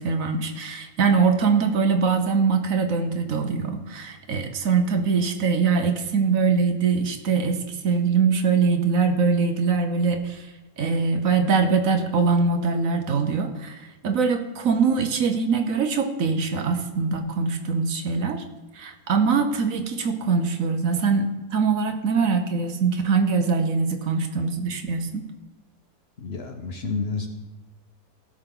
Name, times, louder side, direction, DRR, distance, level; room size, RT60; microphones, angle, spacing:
voice 1, 0.0-10.5 10.8-18.4 18.7-25.2, right 5 dB, 65° right, 6 dB, 1.2 m, -23 dB
voice 2, 26.2-27.3, left 4 dB, 45° left, 4 dB, 1.1 m, -29 dB
16.0 x 6.4 x 3.8 m, 1.1 s
omnidirectional pair, 1.6 m